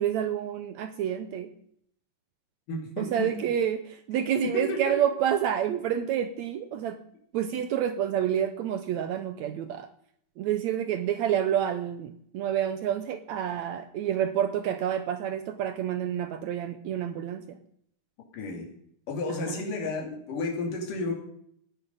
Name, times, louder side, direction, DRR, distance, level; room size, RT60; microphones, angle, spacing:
voice 1, 0.0-1.5 3.0-7.0 7.3-9.9 10.4-17.6 19.5-19.6, right 9 dB, 70° right, 10 dB, 1.8 m, -28 dB
voice 2, 2.7-3.3 4.5-4.9 18.3-18.7 19.1-21.1, left 2 dB, 70° left, 1 dB, 4.4 m, -32 dB
18.0 x 10.5 x 5.5 m, 0.68 s
omnidirectional pair, 3.9 m